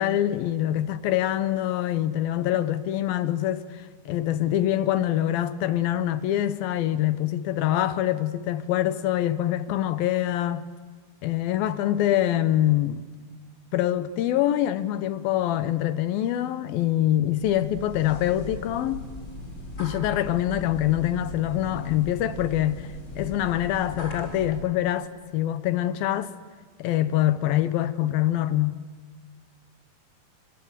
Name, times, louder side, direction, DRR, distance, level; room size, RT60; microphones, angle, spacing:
voice 1, 0.0-10.6 11.2-13.1 13.7-19.0 19.8-22.9 23.2-25.1 25.3-26.3 26.8-28.8, left 12 dB, 75° left, 2.5 m, -25 dB
sound 1, 17.4-24.7, left 1 dB, 20° left, 3.8 m, -38 dB
30.0 x 24.0 x 8.1 m
omnidirectional pair, 4.6 m